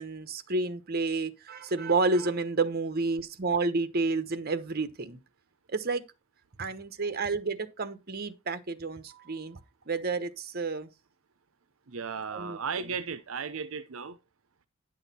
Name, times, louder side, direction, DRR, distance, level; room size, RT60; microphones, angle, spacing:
voice 1, 0.0-5.2 5.7-6.0 6.6-9.6 9.9-10.9 12.3-12.9, right 3 dB, 45° right, 1.0 m, -30 dB
voice 2, 11.9-14.2, right 6 dB, 70° right, 0.7 m, -35 dB
10.0 x 6.4 x 4.2 m
head